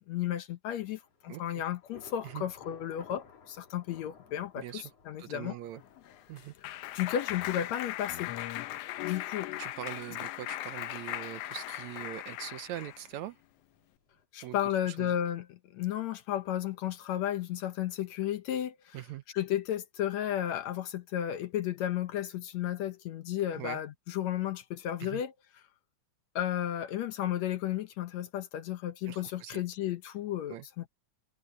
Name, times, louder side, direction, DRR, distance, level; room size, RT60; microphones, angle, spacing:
voice 1, 0.1-5.6 6.7-8.3 9.0-9.5 14.3-19.0 19.3-25.3 26.4-30.9, left 11 dB, 70° left, 1.9 m, -33 dB
Thunder / Rain, 0.7-14.3, left 6 dB, 55° left, 3.7 m, -59 dB
voice 2, 4.6-4.9 5.2-5.8 6.3-6.5 9.6-13.4 14.4-15.2 18.9-19.2 23.5-23.8 25.0-25.2 29.1-29.6 30.5-30.7, right 13 dB, 75° right, 1.8 m, -42 dB
Clapping, 5.8-13.1, left 15 dB, 90° left, 1.4 m, -38 dB
omnidirectional pair, 3.6 m